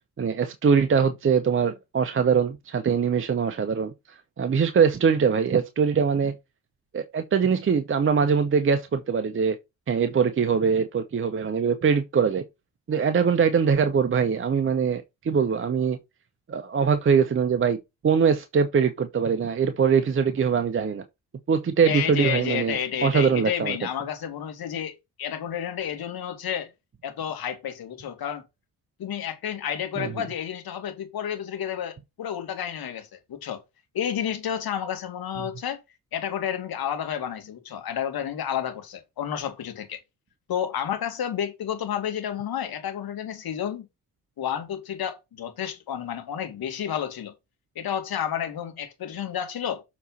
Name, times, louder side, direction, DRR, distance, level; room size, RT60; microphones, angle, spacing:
voice 1, 0.2-3.9 4.4-6.3 6.9-9.6 9.9-12.4 12.9-16.0 16.5-17.8 18.0-21.0 21.5-23.8 30.0-30.1, right 6 dB, 25° right, 1.0 m, -22 dB
voice 2, 21.8-26.7 27.0-28.4 29.0-33.6 33.9-35.8 36.1-40.0 40.5-43.9 44.4-47.3 47.8-49.8, left 9 dB, 50° left, 2.5 m, -31 dB
7.0 x 4.3 x 5.7 m
figure-of-eight pair, 45°, 47 cm